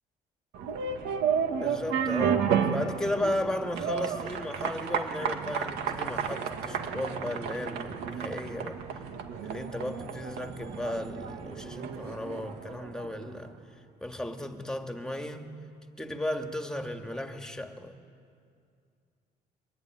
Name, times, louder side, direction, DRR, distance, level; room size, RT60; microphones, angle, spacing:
sound 1, 0.5-13.3, right 7 dB, 85° right, 2.2 m, -32 dB
voice 1, 1.6-8.8 9.4-13.6 14.0-15.5 16.0-17.9, left 1 dB, 5° left, 5 dB, 2.1 m, -35 dB
24.5 x 21.0 x 9.7 m, 2.3 s
cardioid pair, 110°, 17 cm